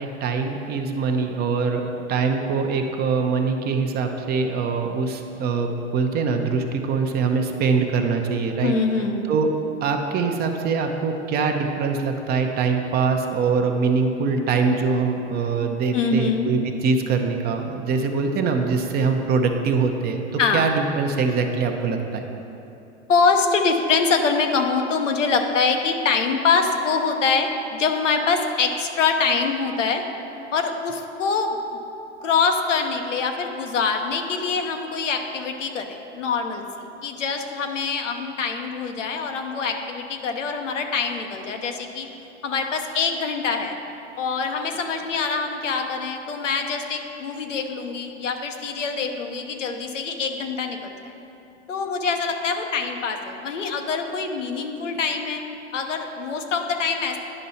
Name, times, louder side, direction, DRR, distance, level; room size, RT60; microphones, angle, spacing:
voice 1, 0.0-8.7 9.3-9.5 9.8-20.2 20.5-22.2, right 5 dB, 25° right, 4 dB, 0.6 m, -23 dB
voice 2, 8.6-9.3 15.9-16.5 20.4-20.7 23.1-30.0 30.5-31.6 32.2-42.1 42.4-43.8 44.2-51.1 51.7-55.4 55.7-57.2, left 5 dB, 90° left, 4 dB, 0.9 m, -24 dB
9.9 x 5.4 x 4.1 m, 2.9 s
hypercardioid pair, 115°, 36 cm